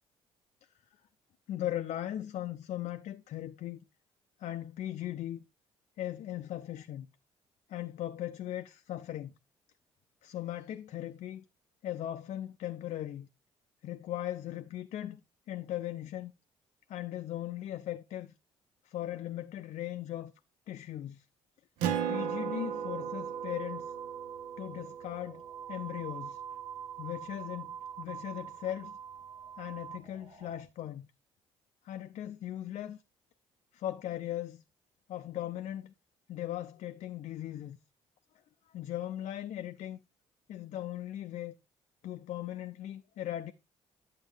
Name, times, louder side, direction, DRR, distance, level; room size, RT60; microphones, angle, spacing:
voice 1, 1.5-3.8 4.4-5.4 6.0-7.1 7.7-9.3 10.2-11.4 11.8-13.3 13.8-15.2 15.5-16.3 16.9-18.3 18.8-20.3 20.7-21.3 22.1-23.9 24.6-25.4 25.7-26.4 27.0-29.0 29.6-31.1 31.8-33.0 33.7-34.6 35.1-35.9 36.3-37.8 38.7-40.0 40.5-41.6 42.0-43.5, left 12 dB, 50° left, 0.5 m, -38 dB
Acoustic guitar, 21.8-26.8, right 8 dB, 65° right, 0.7 m, -37 dB
sound 1, 22.1-30.6, right 9 dB, 40° right, 1.1 m, -44 dB
8.7 x 7.4 x 3.3 m
figure-of-eight pair, 45°, 15 cm